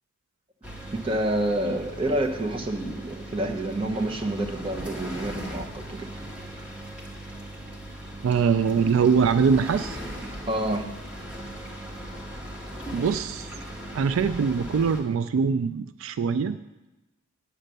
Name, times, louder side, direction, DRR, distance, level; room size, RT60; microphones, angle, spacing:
sound 1, 0.6-15.0, right 1 dB, 5° right, 1.2 m, -39 dB
voice 1, 0.9-6.1 10.5-10.9, right 1 dB, 25° right, 3 dB, 0.8 m, -28 dB
voice 2, 8.2-10.0 12.9-13.5 13.9-16.6, right 6 dB, 75° right, 13 dB, 0.3 m, -23 dB
9.0 x 6.5 x 6.6 m, 1.0 s
head